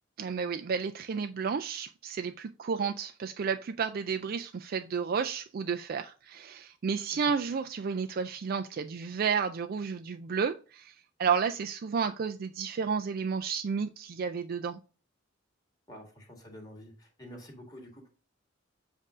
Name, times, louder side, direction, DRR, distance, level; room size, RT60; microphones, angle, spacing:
voice 1, 0.2-14.8, right 6 dB, 50° right, 7 dB, 0.4 m, -32 dB
voice 2, 15.9-18.1, equal, 20° left, 0 dB, 1.9 m, -48 dB
7.5 x 2.7 x 4.8 m, 0.36 s
head